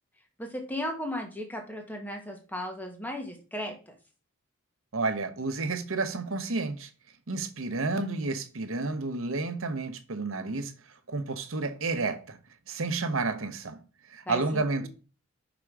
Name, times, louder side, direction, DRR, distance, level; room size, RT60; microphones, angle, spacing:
voice 1, 0.4-3.9 14.2-14.9, left 1 dB, 10° left, 1.3 m, -36 dB
voice 2, 4.9-6.9 7.3-10.7 11.1-12.4 12.7-13.8 14.1-14.9, right 3 dB, 70° right, 0.9 m, -30 dB
6.0 x 3.7 x 4.6 m
head